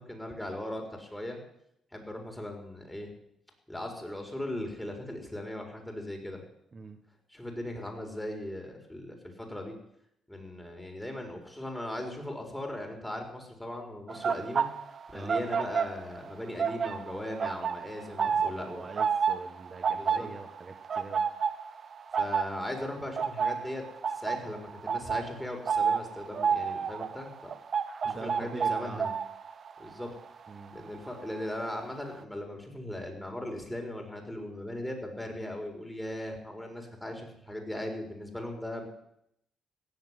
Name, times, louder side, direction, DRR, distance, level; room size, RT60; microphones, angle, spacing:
voice 1, 0.0-1.4 1.9-3.1 3.7-6.4 7.3-9.7 10.3-14.7 15.1-18.9 19.9-20.3 22.1-23.8 24.1-27.5 28.0-29.1 29.8-30.1 30.7-38.9, left 1 dB, 10° left, 2 dB, 4.5 m, -38 dB
sound 1, 14.1-16.3 16.5-31.4 31.7-32.0, right 6 dB, 50° right, 0.9 m, -31 dB
voice 2, 18.2-21.2 28.1-29.0 30.5-30.7, right 4 dB, 30° right, 3 dB, 1.5 m, -43 dB
16.5 x 7.4 x 9.8 m, 0.77 s
cardioid pair, 90°, 0 cm